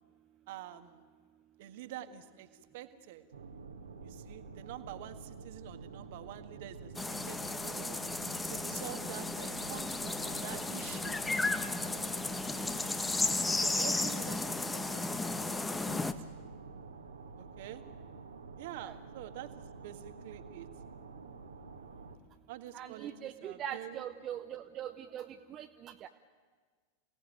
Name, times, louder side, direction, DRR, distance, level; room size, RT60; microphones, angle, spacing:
voice 1, 0.5-1.0 1.6-2.5 2.7-3.2 4.0-8.0 8.5-11.1 13.6-16.1 17.4-17.8 18.6-20.7 22.5-23.1 23.4-24.0, right 12 dB, 50° right, 9 dB, 1.7 m, -47 dB
sound 1, 3.3-22.2, right 4 dB, 70° right, 1.9 m, -49 dB
sound 2, 6.9-16.1, left 2 dB, 10° left, 1.2 m, -34 dB
voice 2, 22.7-26.1, right 10 dB, 30° right, 6 dB, 1.0 m, -42 dB
28.0 x 18.0 x 9.2 m, 1.6 s
figure-of-eight pair, 90°, 0 cm